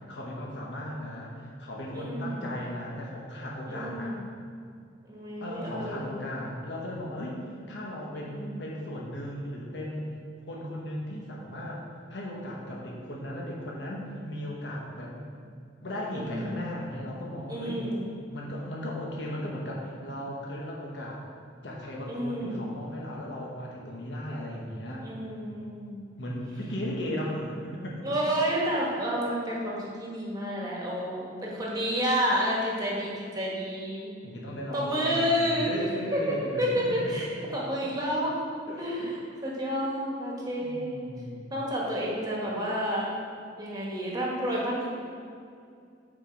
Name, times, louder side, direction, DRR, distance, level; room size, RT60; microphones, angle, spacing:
voice 1, 0.1-4.1 5.4-7.4 7.7-10.1 10.5-11.8 12.1-15.2 15.8-17.8 18.3-21.2 21.6-25.0 26.2-28.0 34.2-37.6 38.7-39.1 40.6-41.4, left 1 dB, 70° left, -3 dB, 1.1 m, -36 dB
voice 2, 1.9-2.4 3.7-4.2 5.0-6.2 8.1-8.6 16.1-16.6 17.5-18.1 22.1-22.6 25.0-26.1 28.0-34.1 34.7-35.7 36.1-37.3 37.5-38.4 38.8-39.1 39.4-41.0 41.5-43.1 43.6-44.9, equal, 20° right, -5 dB, 1.5 m, -30 dB
7.4 x 4.5 x 4.6 m, 2.4 s
head